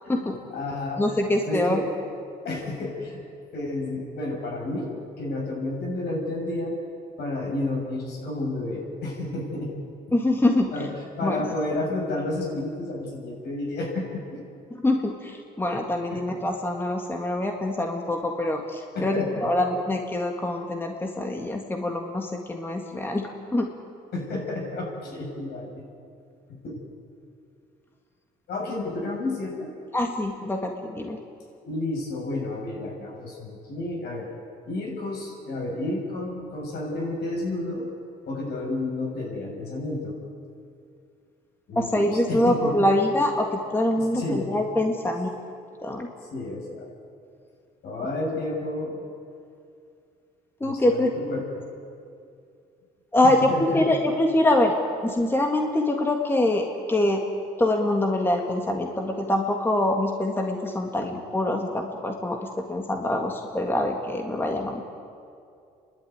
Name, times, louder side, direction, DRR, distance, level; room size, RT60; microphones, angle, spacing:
voice 1, 0.0-1.2 1.4-1.9 2.4-3.2 3.5-6.8 7.2-10.1 10.7-10.9 11.2-14.4 16.1-16.4 18.9-19.6 24.1-25.8 26.5-26.8 28.5-29.7 31.6-34.3 34.6-37.9 38.3-40.2 41.7-42.8 44.0-44.5 46.3-46.9 47.8-49.0 50.6-51.6 53.2-53.8, left 2 dB, 70° left, -1 dB, 7.5 m, -31 dB
voice 2, 1.0-1.8 10.1-10.9 11.2-11.5 14.8-23.7 29.9-31.2 41.7-45.3 45.8-46.1 50.6-51.1 53.1-54.7 55.0-57.2 57.6-64.9, left 1 dB, 15° left, 2 dB, 1.8 m, -24 dB
30.0 x 12.0 x 9.5 m, 2.4 s
cardioid pair, 110°, 17 cm